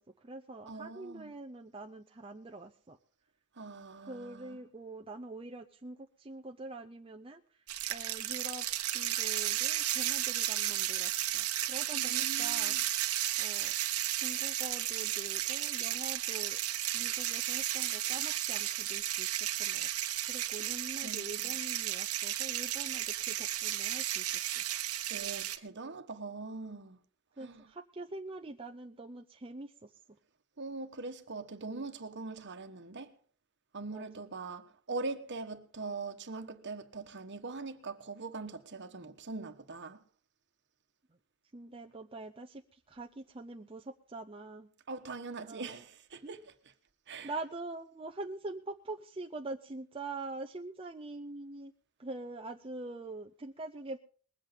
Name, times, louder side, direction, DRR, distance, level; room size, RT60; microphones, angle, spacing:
voice 1, 0.0-3.0 4.0-12.8 13.4-13.7 14.1-16.6 16.9-19.9 20.3-24.6 27.4-30.2 33.9-34.1 41.5-44.7 45.4-45.8 46.2-46.3 47.2-51.7 52.0-54.0, right 2 dB, 25° right, 0.6 m, -44 dB
voice 2, 0.7-1.3 3.6-4.6 11.9-12.8 21.0-21.5 25.1-27.0 27.4-27.6 30.6-33.1 33.7-40.0 44.9-46.4 47.1-47.3, right 3 dB, 55° right, 1.3 m, -42 dB
sound 1, 7.7-25.6, right 13 dB, 75° right, 1.1 m, -33 dB
21.0 x 8.2 x 5.2 m
head